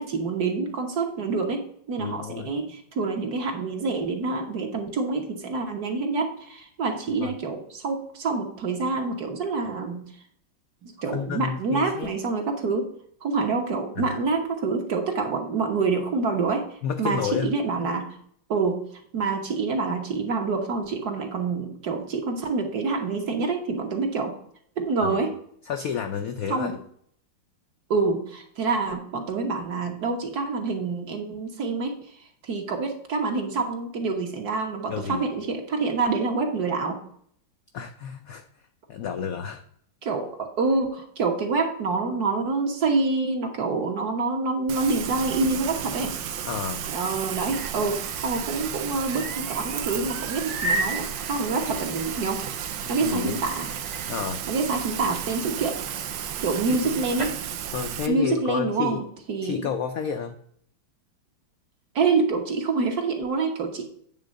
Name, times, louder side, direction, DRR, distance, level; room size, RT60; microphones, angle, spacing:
voice 1, 0.0-10.0 10.8-12.8 13.2-16.6 17.0-18.2 18.5-24.4 24.8-25.3 26.5-26.8 27.9-32.2 32.4-37.0 40.0-46.2 46.9-52.4 52.9-53.7 54.5-55.8 56.4-57.4 58.1-59.7 61.9-63.9, right 4 dB, 55° right, 3 dB, 1.6 m, -27 dB
voice 2, 2.0-2.5 7.2-7.3 11.1-12.1 14.0-14.2 16.8-17.5 25.0-25.2 25.7-26.8 34.9-35.3 37.7-38.4 38.9-39.6 46.4-46.9 52.8-53.4 54.1-54.4 56.7-56.8 57.7-59.0 59.4-60.4, left 7 dB, 70° left, 6 dB, 0.8 m, -30 dB
Rain, 44.7-58.1, right 9 dB, 70° right, 1.3 m, -33 dB
sound 1, 47.5-57.4, right 1 dB, 25° right, 1.0 m, -37 dB
8.8 x 3.7 x 6.3 m, 0.64 s
omnidirectional pair, 2.2 m